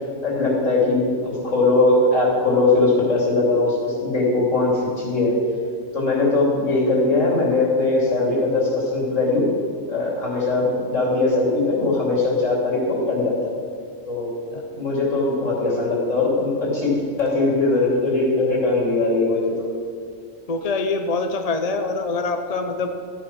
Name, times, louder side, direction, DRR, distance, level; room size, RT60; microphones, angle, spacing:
voice 1, 0.2-5.3 5.9-9.5 9.9-13.6 14.1-16.9 17.2-19.7, left 2 dB, 70° left, -4 dB, 3.6 m, -20 dB
voice 2, 20.5-22.9, left 3 dB, 35° left, 6 dB, 0.7 m, -24 dB
14.0 x 9.2 x 6.2 m, 2.2 s
omnidirectional pair, 1.4 m